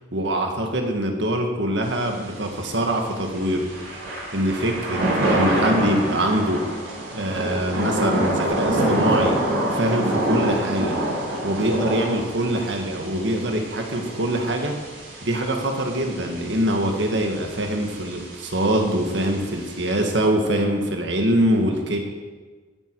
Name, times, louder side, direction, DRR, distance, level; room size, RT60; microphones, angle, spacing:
voice 1, 0.1-3.6 4.3-6.6 7.1-9.4 9.7-11.0 11.4-14.7 15.2-22.0, right 1 dB, 60° right, 3 dB, 1.9 m, -23 dB
Thunder / Rain, 1.8-20.1, right 1 dB, 80° right, 4.7 m, -27 dB
15.0 x 9.8 x 4.8 m, 1.4 s
head